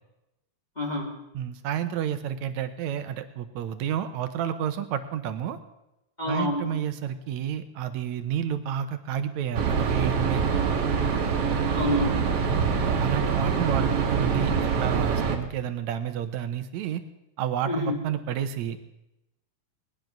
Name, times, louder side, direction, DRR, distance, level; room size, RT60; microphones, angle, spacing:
voice 1, 0.8-1.2 6.2-6.8 11.7-12.2 17.7-18.0, left 2 dB, 20° left, 0 dB, 1.5 m, -28 dB
voice 2, 1.3-5.6 6.3-10.5 12.5-17.0 17.4-18.8, right 9 dB, 80° right, 10 dB, 2.1 m, -30 dB
sound 1, 9.5-15.4, right 6 dB, 60° right, 2.3 m, -25 dB
19.0 x 10.5 x 6.0 m, 0.93 s
omnidirectional pair, 3.4 m